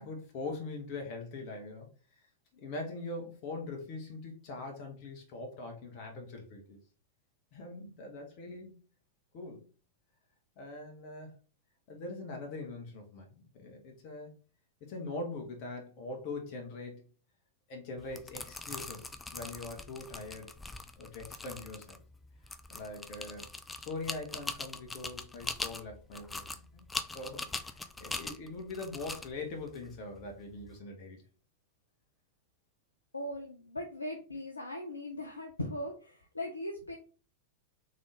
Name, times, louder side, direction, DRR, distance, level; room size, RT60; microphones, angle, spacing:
voice 1, 0.0-1.9 2.5-6.8 7.5-8.8 9.3-9.6 10.6-11.3 11.9-13.3 13.5-14.3 14.8-17.0 17.7-20.5 21.0-22.0 22.7-23.5 23.9-26.9 27.1-31.2, left 3 dB, 45° left, 2 dB, 1.2 m, -42 dB
sound 1, 18.0-30.7, left 3 dB, 10° left, 0.4 m, -42 dB
voice 2, 33.1-37.0, left 1 dB, 80° left, 2 dB, 0.6 m, -39 dB
3.8 x 3.7 x 3.5 m, 0.37 s
figure-of-eight pair, 90°, 0 cm